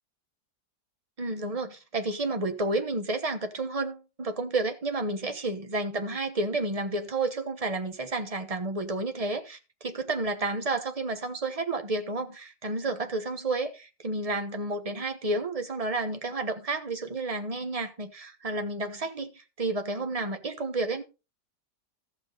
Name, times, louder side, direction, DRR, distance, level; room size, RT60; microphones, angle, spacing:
voice 1, 1.2-21.0, right 2 dB, 25° right, 1.1 m, -31 dB
14.5 x 6.7 x 4.0 m
omnidirectional pair, 1.8 m